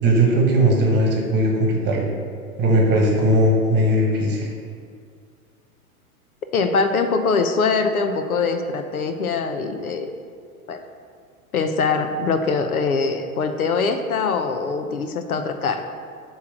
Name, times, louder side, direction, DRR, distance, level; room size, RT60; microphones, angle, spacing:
voice 1, 0.0-2.1 2.6-4.5, right 1 dB, 25° right, -1 dB, 1.3 m, -18 dB
voice 2, 6.5-10.1 10.7-10.8 11.5-15.9, left 4 dB, 70° left, 7 dB, 0.7 m, -23 dB
8.1 x 3.1 x 6.4 m, 2.1 s
figure-of-eight pair, 100°, 44 cm